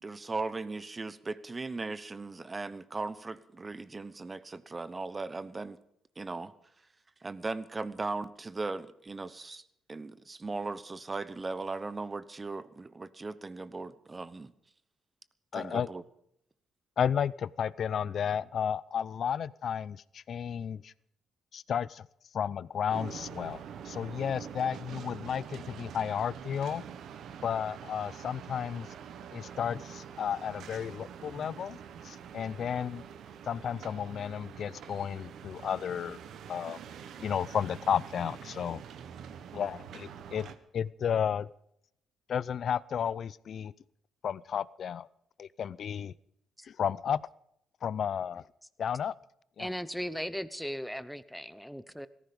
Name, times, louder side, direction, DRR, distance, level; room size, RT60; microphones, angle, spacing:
voice 1, 0.0-5.8 6.2-6.5 7.2-14.5 15.5-16.0, right 3 dB, 25° right, 15 dB, 1.0 m, -38 dB
voice 2, 15.5-15.9 17.0-20.9 21.5-22.1 22.3-26.8 27.4-28.9 29.3-31.8 32.0-33.0 33.5-36.2 36.5-36.8 37.2-38.8 39.5-41.5 42.3-43.7 44.2-45.1 45.4-46.1 46.6-47.2 47.8-48.4 48.8-49.1 49.6-49.7, left 8 dB, 55° left, 21 dB, 0.5 m, -33 dB
sound 1, 22.9-40.6, right 8 dB, 75° right, 1.2 m, -46 dB
voice 3, 49.6-52.1, equal, ahead, 14 dB, 0.9 m, -37 dB
17.0 x 14.5 x 5.3 m, 0.73 s
cardioid pair, 95°, 0 cm